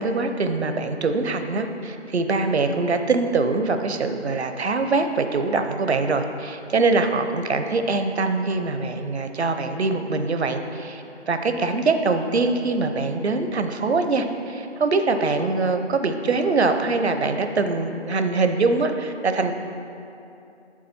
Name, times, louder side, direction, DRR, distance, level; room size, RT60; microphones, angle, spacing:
voice 1, 0.0-19.5, right 3 dB, 65° right, 7 dB, 0.9 m, -23 dB
8.0 x 7.4 x 5.9 m, 2.7 s
figure-of-eight pair, 150°, 35 cm